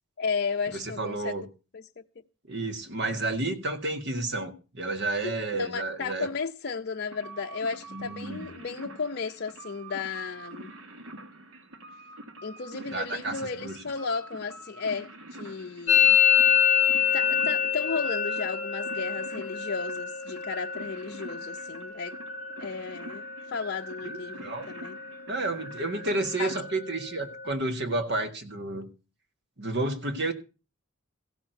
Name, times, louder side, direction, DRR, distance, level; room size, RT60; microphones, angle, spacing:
voice 1, 0.2-1.3 1.7-2.0 5.2-10.7 12.4-16.2 17.1-22.2 22.6-25.0 26.0-26.5, left 5 dB, 50° left, 0.6 m, -34 dB
voice 2, 0.7-1.5 2.5-6.3 7.9-8.5 12.9-13.8 24.0-24.7 25.3-28.9 29.6-30.3, right 2 dB, 55° right, 1.9 m, -31 dB
sound 1, 7.1-26.6, right 2 dB, 75° right, 2.0 m, -45 dB
Musical instrument, 15.9-23.5 23.8-24.4 24.6-25.2 25.5-27.5, left 8 dB, 35° left, 1.5 m, -27 dB
15.5 x 6.1 x 8.0 m
head